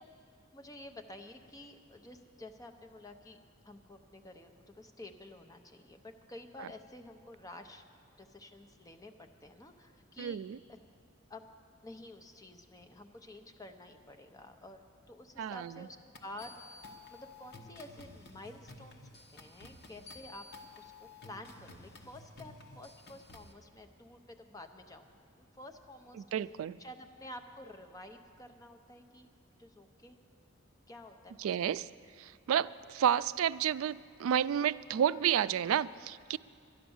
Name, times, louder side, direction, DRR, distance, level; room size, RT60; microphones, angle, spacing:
voice 1, 0.5-3.4 3.6-7.9 8.2-10.4 10.7-10.8 11.3-11.5 11.8-16.5 17.1-19.0 19.3-20.4 20.8-25.1 25.4-26.2 26.8-29.3 29.6-30.2 30.9-31.6, left 1 dB, 15° left, 5 dB, 0.7 m, -50 dB
voice 2, 10.2-10.6 15.4-15.9 26.3-26.8 31.4-31.9 32.2-36.4, right 9 dB, 85° right, 16 dB, 0.3 m, -31 dB
sound 1, 16.2-23.5, left 2 dB, 55° left, 1.1 m, -52 dB
11.0 x 11.0 x 7.1 m, 2.4 s
head